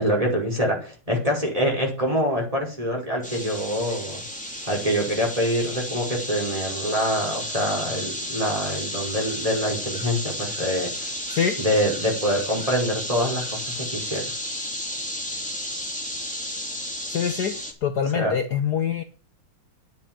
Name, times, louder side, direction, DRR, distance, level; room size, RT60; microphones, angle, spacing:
voice 1, 0.0-4.2 4.7-11.1 11.6-14.2 18.1-18.3, equal, 15° right, -1 dB, 5.3 m, -25 dB
sound 1, 3.2-17.7, left 1 dB, 5° left, 3.0 m, -32 dB
voice 2, 17.1-17.5 17.8-19.0, left 8 dB, 55° left, 7 dB, 1.5 m, -24 dB
10.5 x 7.7 x 9.0 m, 0.35 s
omnidirectional pair, 2.3 m